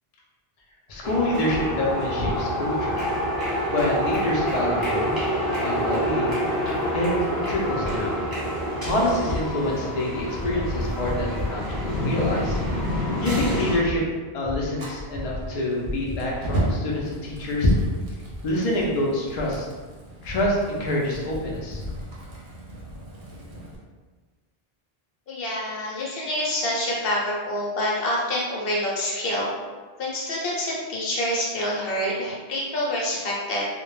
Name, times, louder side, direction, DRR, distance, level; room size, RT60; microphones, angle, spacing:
voice 1, 0.9-3.1 3.7-5.1 5.6-6.5 6.9-7.1 7.5-8.2 8.8-12.6 13.2-14.0 14.3-17.7 18.4-19.6 20.2-21.8, left 1 dB, 50° left, -3 dB, 0.5 m, -26 dB
sound 1, 1.0-13.8, equal, 25° right, 0.9 m, -27 dB
Fire, 14.7-23.7, right 1 dB, 60° right, 0.7 m, -35 dB
voice 2, 25.3-29.5 30.0-33.7, left 1 dB, 70° left, -4 dB, 0.8 m, -27 dB
2.1 x 2.1 x 3.0 m, 1.4 s
omnidirectional pair, 1.0 m